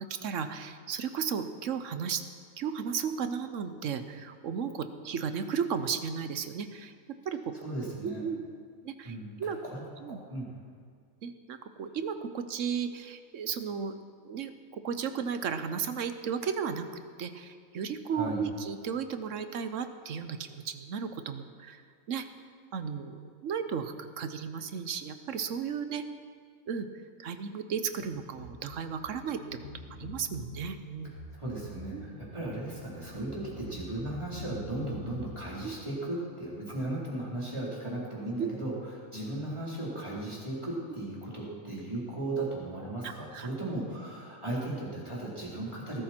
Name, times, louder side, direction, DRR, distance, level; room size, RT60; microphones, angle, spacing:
voice 1, 0.0-2.2 2.6-6.9 7.2-7.5 8.0-8.4 8.8-9.6 10.0-10.2 11.2-13.9 14.2-16.9 17.2-21.8 22.1-22.3 22.7-26.0 26.7-26.9 27.2-29.4 30.0-31.1 31.9-32.0 35.6-35.7 38.4-38.5 43.0-43.5, right 7 dB, 65° right, 10 dB, 1.1 m, -34 dB
voice 2, 7.6-8.2 9.0-10.5 18.1-18.4 31.3-46.0, right 1 dB, 20° right, -6 dB, 3.8 m, -36 dB
sound 1, 27.8-35.2, left 1 dB, 60° left, 2.4 m, -47 dB
20.0 x 13.0 x 4.4 m, 2.1 s
omnidirectional pair, 1.5 m